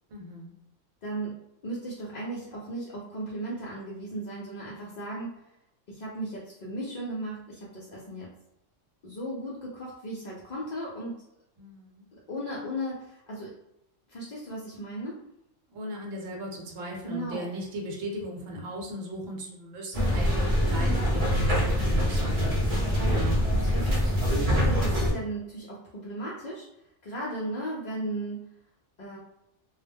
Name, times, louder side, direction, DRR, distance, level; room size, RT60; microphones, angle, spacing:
voice 1, 0.1-0.5 11.6-12.1 15.7-21.5 21.8-22.5 23.1-23.4, right 1 dB, 80° right, 0 dB, 1.0 m, -38 dB
voice 2, 1.0-5.4 5.9-8.3 9.0-11.2 12.3-13.5 14.1-15.2 17.0-17.5 22.8-23.2 23.7-26.7 27.0-28.5 29.0-29.2, right 1 dB, 65° left, -5 dB, 0.4 m, -36 dB
sound 1, 19.9-25.1, equal, 40° right, 0.6 m, -24 dB
2.2 x 2.0 x 3.3 m, 0.84 s
omnidirectional pair, 1.3 m